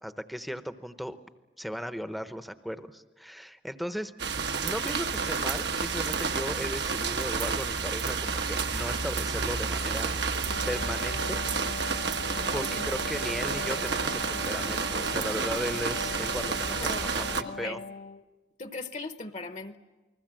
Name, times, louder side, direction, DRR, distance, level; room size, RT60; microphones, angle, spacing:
voice 1, 0.0-1.2 1.6-4.1 4.6-10.1 10.7-11.4 12.5-17.8, equal, ahead, 10 dB, 0.8 m, -36 dB
sound 1, 4.2-17.4, right 5 dB, 70° right, 1.3 m, -30 dB
Wind instrument woodwind instrument, 10.3-18.3, left 3 dB, 80° left, 1.0 m, -40 dB
voice 2, 12.5-12.9 16.8-17.0 17.4-17.8 18.6-19.8, left 3 dB, 40° left, 9 dB, 1.0 m, -39 dB
28.5 x 20.5 x 7.6 m, 1.2 s
head